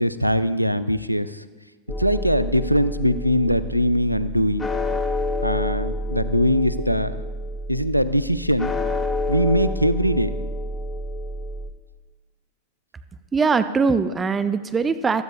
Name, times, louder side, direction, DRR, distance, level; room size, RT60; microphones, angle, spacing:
voice 1, 0.0-1.4 2.0-4.7 5.4-7.2 7.7-8.7 9.3-10.4, equal, 90° right, 13 dB, 0.5 m, -21 dB
sound 1, 1.9-11.7, left 1 dB, 20° left, 1.1 m, -28 dB
voice 2, 13.3-15.2, right 4 dB, 15° right, 10 dB, 0.5 m, -21 dB
20.0 x 13.5 x 2.4 m, 1.3 s
figure-of-eight pair, 90°, 0 cm